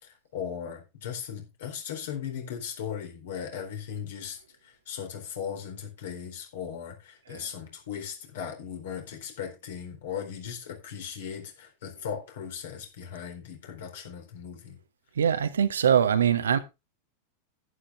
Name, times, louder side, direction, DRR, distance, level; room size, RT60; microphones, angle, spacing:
voice 1, 0.0-14.8, left 8 dB, 60° left, 4.1 m, -38 dB
voice 2, 15.2-16.6, right 8 dB, 65° right, 1.1 m, -23 dB
11.0 x 10.5 x 3.6 m
figure-of-eight pair, 90°, 0 cm